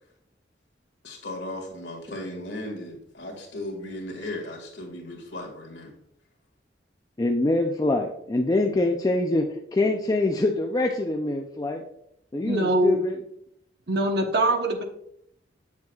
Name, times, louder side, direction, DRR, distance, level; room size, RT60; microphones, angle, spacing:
voice 1, 1.0-5.9, left 1 dB, 70° left, 1.9 m, -36 dB
voice 2, 7.2-11.8 12.3-13.2, left 2 dB, 20° left, 0.4 m, -24 dB
voice 3, 12.4-13.0 13.9-14.8, right 1 dB, 60° right, 1.0 m, -23 dB
7.8 x 7.3 x 2.4 m
head